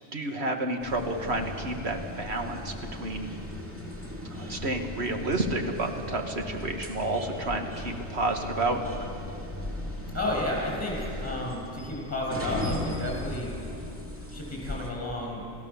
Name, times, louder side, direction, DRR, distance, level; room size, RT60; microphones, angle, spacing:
voice 1, 0.1-3.3 4.3-9.0, right 2 dB, 75° right, 3 dB, 2.0 m, -30 dB
sound 1, 0.8-14.9, left 1 dB, 10° right, 2.7 m, -37 dB
voice 2, 10.1-13.5 14.3-15.5, left 1 dB, 15° left, -3 dB, 7.1 m, -32 dB
30.0 x 15.0 x 7.2 m, 2.7 s
omnidirectional pair, 1.1 m